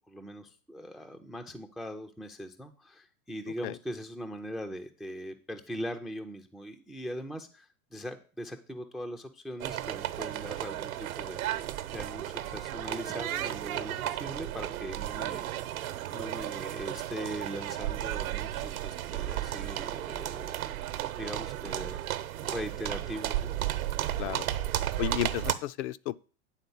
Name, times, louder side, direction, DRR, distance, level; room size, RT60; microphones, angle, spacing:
voice 1, 0.0-11.4 11.9-15.5 16.1-20.6 21.2-22.0 22.4-23.5, equal, ahead, 0.3 m, -40 dB
sound 1, 9.6-25.5, right 13 dB, 70° right, 1.0 m, -34 dB
voice 2, 25.0-26.2, left 13 dB, 50° left, 0.5 m, -33 dB
9.3 x 3.8 x 7.0 m
hypercardioid pair, 95°, 44 cm